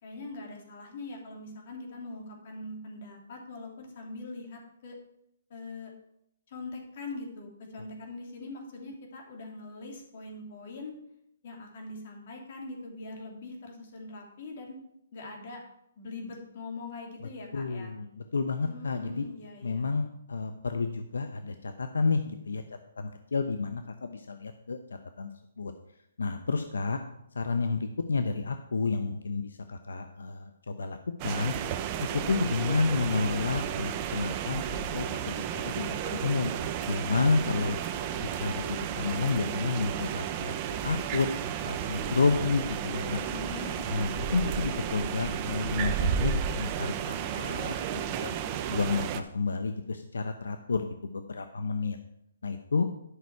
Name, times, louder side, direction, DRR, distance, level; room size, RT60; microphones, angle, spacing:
voice 1, 0.0-5.0 5.5-5.9 6.5-10.9 11.4-14.8 15.1-15.6 16.0-17.9 18.6-19.9 37.1-38.3 43.3-43.9, left 3 dB, 50° left, 1 dB, 2.8 m, -42 dB
voice 2, 17.5-19.3 19.6-22.6 23.0-24.8 25.2-25.3 25.6-25.7 26.2-27.0 27.3-31.5 32.1-36.5 36.9-37.8 38.2-40.6 40.8-41.3 41.6-43.2 43.9-48.4 48.7-52.0 52.4-52.8, left 4 dB, 85° left, 7 dB, 0.8 m, -30 dB
sound 1, 31.2-49.2, right 8 dB, 30° right, 0.6 m, -33 dB
11.5 x 6.1 x 4.7 m, 0.77 s
hypercardioid pair, 155°, 0 cm